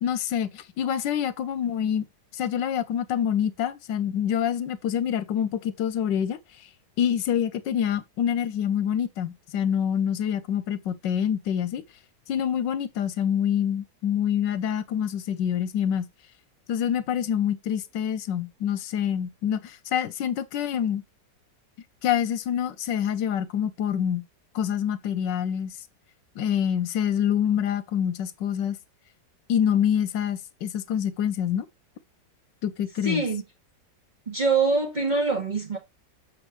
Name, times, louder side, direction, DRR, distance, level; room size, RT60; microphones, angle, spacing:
voice 1, 0.0-2.0 2.3-6.4 7.0-11.8 12.3-16.1 16.7-21.0 22.0-24.2 24.5-25.7 26.4-28.8 29.5-31.7 32.6-33.2, left 9 dB, 90° left, 1.4 m, -26 dB
voice 2, 33.0-33.4 34.3-35.8, right 3 dB, 25° right, 2.2 m, -24 dB
7.4 x 5.4 x 3.0 m
omnidirectional pair, 1.9 m